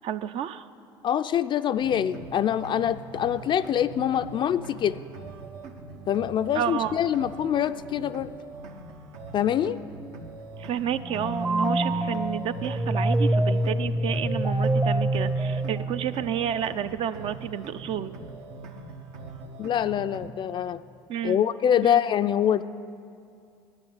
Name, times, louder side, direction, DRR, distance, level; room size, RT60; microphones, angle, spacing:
voice 1, 0.0-0.7 6.5-7.0 10.6-18.1 21.1-21.4 21.8-22.0, right 9 dB, 55° right, 12 dB, 0.5 m, -30 dB
voice 2, 1.0-5.0 6.1-8.3 9.3-9.8 19.6-20.8 21.2-22.6, left 10 dB, 45° left, 10 dB, 0.4 m, -25 dB
sound 1, 1.7-20.3, right 3 dB, 75° right, 1.1 m, -42 dB
sound 2, 11.0-16.5, right 1 dB, 15° right, 0.7 m, -26 dB
9.6 x 9.6 x 9.0 m, 2.5 s
hypercardioid pair, 70°, 11 cm